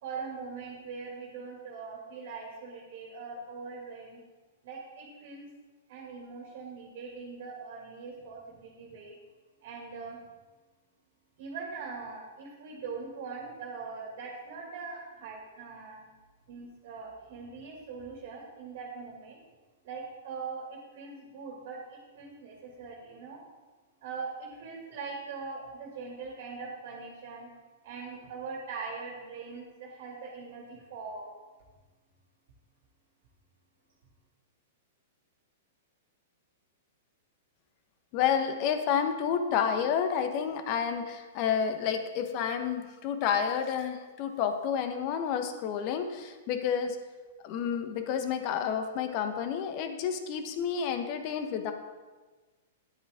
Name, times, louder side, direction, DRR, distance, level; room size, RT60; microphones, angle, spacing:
voice 1, 0.0-4.2 4.6-5.5 5.9-9.2 9.6-10.2 11.4-16.1 16.5-19.4 19.8-23.4 24.0-27.5 27.8-31.3, right 4 dB, 60° right, -2 dB, 2.2 m, -41 dB
voice 2, 38.1-47.0 47.4-51.7, left 7 dB, 45° left, 7 dB, 1.2 m, -30 dB
10.5 x 8.8 x 3.7 m, 1.3 s
hypercardioid pair, 110°, 0 cm